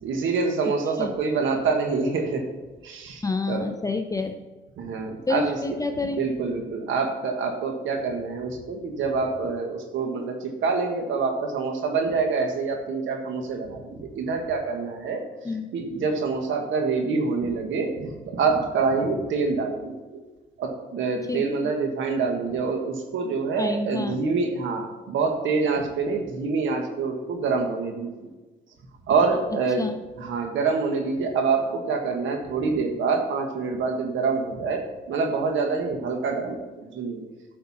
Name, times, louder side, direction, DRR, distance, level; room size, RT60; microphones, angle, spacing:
voice 1, 0.0-2.4 2.8-3.7 4.8-5.6 6.2-15.2 15.7-19.9 20.6-28.1 29.1-29.9 30.2-37.2, right 4 dB, 75° right, 4 dB, 1.6 m, -26 dB
voice 2, 3.2-4.4 5.3-6.3 15.4-15.7 21.3-21.4 23.6-24.2 29.8-30.0, left 3 dB, 15° left, 6 dB, 0.6 m, -28 dB
10.5 x 6.7 x 4.2 m, 1.2 s
cardioid pair, 90°, 20 cm